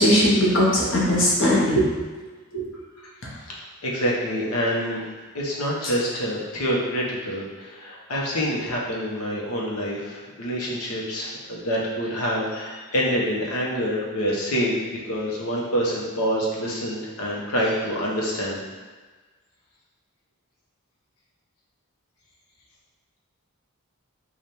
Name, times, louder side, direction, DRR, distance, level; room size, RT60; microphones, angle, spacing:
voice 1, 0.0-1.8 2.5-2.6, equal, 55° left, -6 dB, 1.0 m, -19 dB
voice 2, 3.8-18.6, equal, 90° left, -4 dB, 0.9 m, -26 dB
3.3 x 2.4 x 4.2 m, 1.4 s
head